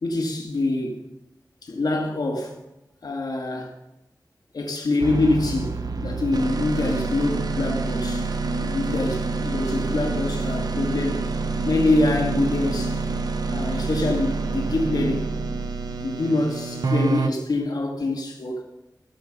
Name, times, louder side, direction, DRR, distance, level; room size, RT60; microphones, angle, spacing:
voice 1, 0.0-1.0 1.6-2.6 3.0-3.7 4.5-8.3 8.6-11.2 11.7-13.0 13.5-15.3 15.9-18.6, left 2 dB, 75° left, 1.9 m, -25 dB
sound 1, 5.0-17.3, right 3 dB, 70° right, 1.0 m, -27 dB
16.0 x 7.5 x 5.4 m
cardioid pair, 45°, 7 cm